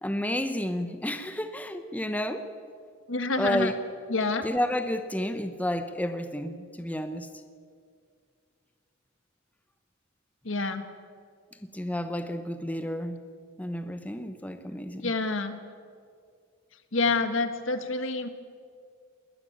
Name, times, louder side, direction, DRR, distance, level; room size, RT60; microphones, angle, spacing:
voice 1, 0.0-2.5 3.4-3.7 4.4-7.3 11.7-13.2 13.6-15.1, left 1 dB, 10° left, 8 dB, 0.9 m, -31 dB
voice 2, 3.1-3.7 4.1-4.5 10.4-10.8 15.0-15.6 16.9-18.3, left 3 dB, 70° left, 9 dB, 1.7 m, -27 dB
20.5 x 20.0 x 8.9 m, 2.2 s
head